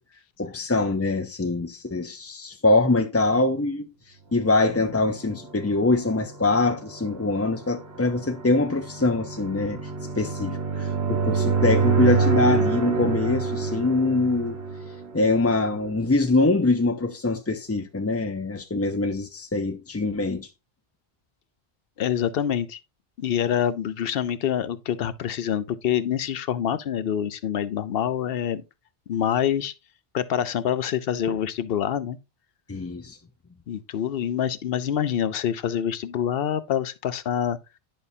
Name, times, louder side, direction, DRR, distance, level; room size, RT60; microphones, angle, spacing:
voice 1, 0.4-3.9 4.3-9.9 10.2-14.6 15.1-20.5 31.3-31.4 32.7-33.2, left 2 dB, 25° left, 0.3 m, -23 dB
sound 1, 5.1-15.9, right 5 dB, 80° right, 1.3 m, -27 dB
voice 2, 22.0-22.8 23.2-28.6 29.1-29.7 30.1-32.2 33.7-37.6, left 9 dB, 70° left, 0.8 m, -26 dB
10.5 x 5.4 x 2.7 m
omnidirectional pair, 1.0 m